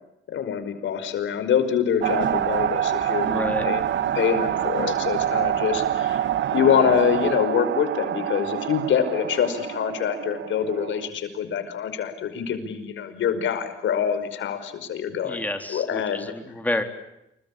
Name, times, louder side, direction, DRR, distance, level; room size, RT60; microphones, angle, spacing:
voice 1, 0.3-3.8 4.1-6.3 6.5-16.3, left 8 dB, 70° left, 9 dB, 5.4 m, -25 dB
sound 1, 2.0-11.1, right 10 dB, 65° right, 1.7 m, -26 dB
voice 2, 3.2-3.7 15.2-16.8, left 1 dB, 10° left, 5 dB, 3.9 m, -29 dB
28.5 x 23.0 x 8.6 m, 0.87 s
cardioid pair, 90°, 20 cm